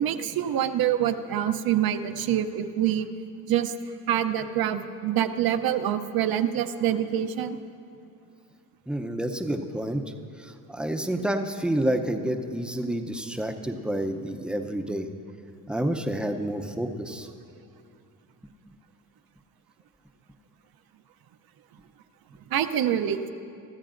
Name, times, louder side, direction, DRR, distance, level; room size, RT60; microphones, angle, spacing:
voice 1, 0.0-3.1 3.5-3.7 4.1-7.6 22.5-23.3, right 10 dB, 60° right, 9 dB, 0.7 m, -26 dB
voice 2, 8.9-10.0 10.4-15.1 15.7-17.3, right 1 dB, ahead, 5 dB, 0.6 m, -29 dB
23.0 x 14.0 x 2.5 m, 2.5 s
cardioid pair, 120°, 40 cm